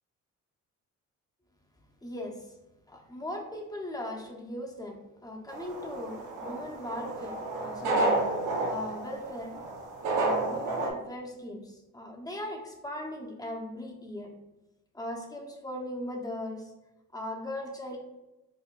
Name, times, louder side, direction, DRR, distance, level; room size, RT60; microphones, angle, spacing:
voice 1, 2.0-2.5 2.9-9.5 10.1-14.3 14.9-16.7 17.1-18.0, left 1 dB, 10° left, 0 dB, 0.7 m, -39 dB
sound 1, 5.5-10.9, right 2 dB, 85° right, 0.8 m, -31 dB
4.5 x 2.5 x 2.3 m, 1.0 s
cardioid pair, 90°, 30 cm